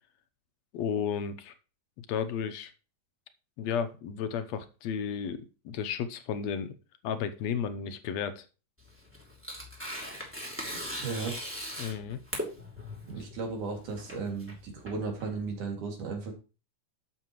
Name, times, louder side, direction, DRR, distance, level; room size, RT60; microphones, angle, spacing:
voice 1, 0.7-1.5 2.1-2.7 3.6-6.8 7.0-8.4 11.8-12.2, left 7 dB, 70° left, 10 dB, 1.9 m, -33 dB
Tearing, 8.8-15.6, equal, 5° right, 2.3 m, -39 dB
voice 2, 11.0-11.4 13.1-16.3, right 4 dB, 75° right, 1 dB, 4.0 m, -35 dB
11.5 x 7.6 x 3.1 m, 0.32 s
omnidirectional pair, 3.6 m